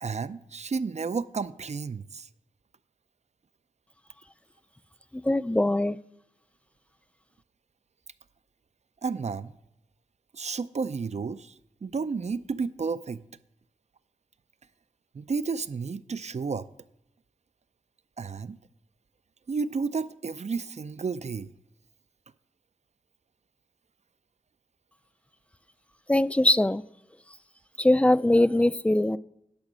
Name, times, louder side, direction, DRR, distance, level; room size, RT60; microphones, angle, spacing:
voice 1, 0.0-2.3 9.0-9.5 10.3-11.5 11.8-13.2 15.1-16.7 18.2-18.6 19.5-21.5, right 5 dB, 55° right, 16 dB, 0.5 m, -32 dB
voice 2, 5.1-6.0 26.1-26.8 27.8-29.2, left 1 dB, 10° left, 17 dB, 0.3 m, -22 dB
10.5 x 6.0 x 6.2 m, 0.80 s
wide cardioid pair, 60°, 14 cm